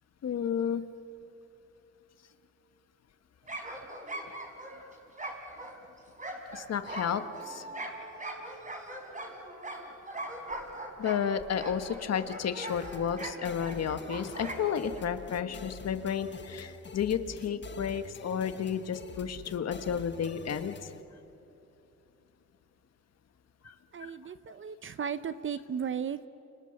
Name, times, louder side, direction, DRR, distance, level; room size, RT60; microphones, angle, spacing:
voice 1, 0.2-0.8 6.5-7.6 11.0-20.7 23.6-23.7 24.0-24.1, left 7 dB, 55° left, 9 dB, 1.5 m, -32 dB
sound 1, 3.4-15.0, right 1 dB, 25° right, 5.0 m, -41 dB
sound 2, 12.7-21.0, left 6 dB, 35° left, 1.2 m, -47 dB
voice 2, 23.9-26.3, right 7 dB, 40° right, 12 dB, 0.8 m, -35 dB
30.0 x 29.5 x 6.7 m, 2.9 s
cardioid pair, 90°, 30 cm